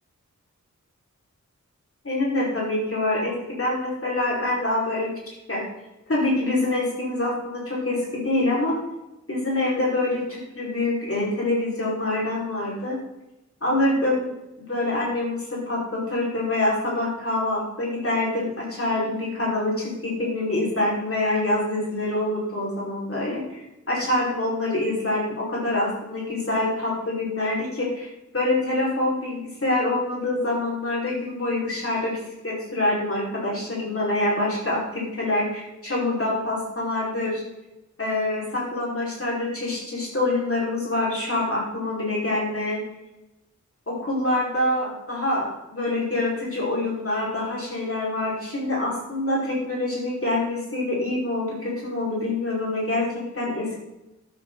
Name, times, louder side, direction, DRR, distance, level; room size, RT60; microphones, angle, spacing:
voice 1, 2.0-5.6 6.1-8.8 9.3-13.0 13.6-14.3 14.7-28.1 28.3-37.4 38.0-42.8 43.9-53.7, left 2 dB, 45° left, -4 dB, 5.2 m, -25 dB
13.0 x 12.0 x 4.1 m, 0.97 s
wide cardioid pair, 65°, 30 cm